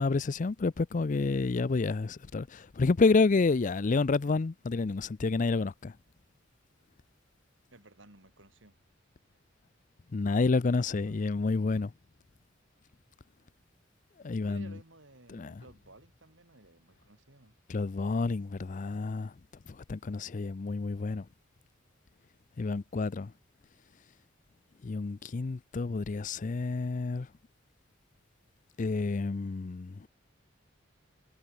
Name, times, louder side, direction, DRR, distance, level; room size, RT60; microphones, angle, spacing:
voice 1, 0.0-5.9 10.1-11.9 14.2-14.7 15.3-15.6 17.7-19.3 19.7-21.3 22.6-23.3 24.8-27.3 28.8-30.1, left 3 dB, 40° left, 0.4 m, -29 dB
voice 2, 7.7-8.8 10.3-11.2 11.7-11.8 14.2-17.6, right 2 dB, 65° right, 4.2 m, -57 dB
head